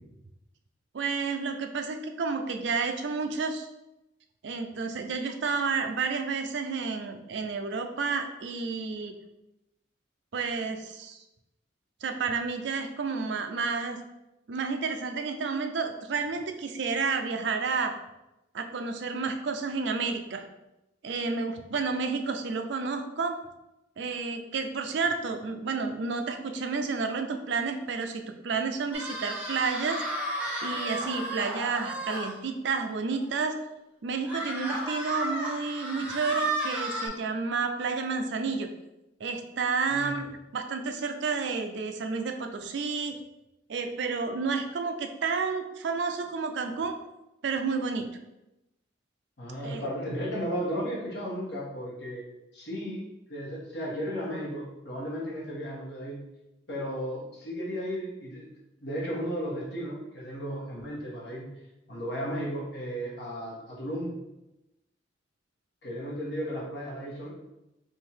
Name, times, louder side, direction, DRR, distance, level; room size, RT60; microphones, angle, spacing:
voice 1, 0.9-3.7 4.4-9.1 10.3-11.2 12.0-14.0 14.5-17.9 18.5-20.4 21.0-23.4 24.0-30.0 30.6-33.6 34.0-38.7 39.2-43.2 43.7-47.0 47.4-48.1 49.6-49.8, right 4 dB, 65° right, 6 dB, 0.4 m, -30 dB
sound 1, 28.9-32.3 32.8-32.9 33.2-33.3 34.3-37.1, right 1 dB, 5° right, 0.8 m, -33 dB
voice 2, 49.4-52.2 52.5-56.2 56.7-58.5 58.8-61.5 61.9-64.1 65.8-67.3, equal, 60° left, -4 dB, 1.3 m, -34 dB
3.7 x 2.7 x 4.3 m, 0.94 s
head